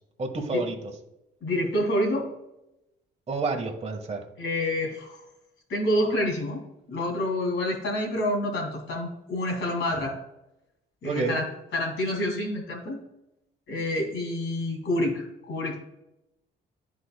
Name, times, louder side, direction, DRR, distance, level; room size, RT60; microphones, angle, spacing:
voice 1, 0.2-0.9 3.3-4.2 11.0-11.4, right 3 dB, 35° right, 3 dB, 1.3 m, -29 dB
voice 2, 1.4-2.3 4.4-5.2 5.7-10.1 11.0-11.5 11.7-13.0 13.7-15.8, left 1 dB, 70° left, 1 dB, 2.4 m, -28 dB
9.9 x 4.9 x 2.2 m, 0.89 s
cardioid pair, 90°, 20 cm